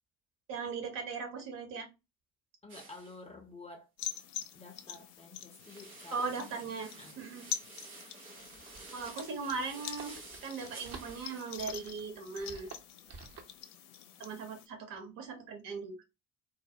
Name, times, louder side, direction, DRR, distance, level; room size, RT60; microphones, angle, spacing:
voice 1, 0.5-1.9 6.1-7.5 8.9-12.7 14.2-16.0, right 4 dB, 55° right, 0.9 m, -39 dB
voice 2, 2.6-3.9 4.5-7.2, left 3 dB, 15° left, 0.5 m, -51 dB
sound 1, 2.7-3.2 5.5-11.6, right 3 dB, 90° right, 0.6 m, -51 dB
sound 2, 4.0-14.7, left 9 dB, 70° left, 0.5 m, -45 dB
sound 3, 8.4-13.6, right 5 dB, 35° right, 0.6 m, -51 dB
2.2 x 2.1 x 2.7 m
figure-of-eight pair, 50°, 40 cm